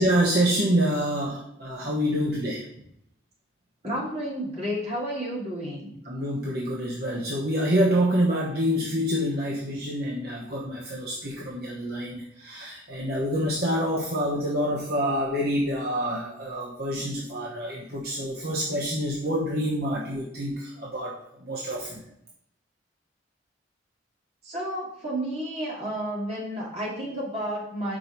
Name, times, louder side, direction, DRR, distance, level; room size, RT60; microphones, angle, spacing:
voice 1, 0.0-2.6 6.1-22.0, equal, 55° right, -4 dB, 1.1 m, -27 dB
voice 2, 3.8-5.9 24.4-28.0, equal, 35° right, -4 dB, 2.5 m, -31 dB
5.6 x 5.0 x 5.8 m, 0.73 s
head